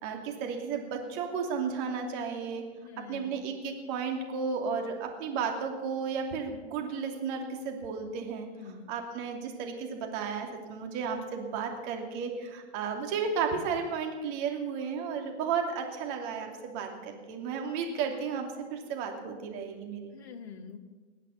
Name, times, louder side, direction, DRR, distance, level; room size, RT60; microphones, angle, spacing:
voice 1, 0.0-2.6 3.1-8.5 8.9-20.1, right 6 dB, 45° right, 3 dB, 2.8 m, -33 dB
voice 2, 2.8-3.4 8.5-8.9 20.1-20.8, left 6 dB, 70° left, 4 dB, 1.8 m, -45 dB
20.0 x 8.2 x 7.0 m, 1.4 s
hypercardioid pair, 120°, 33 cm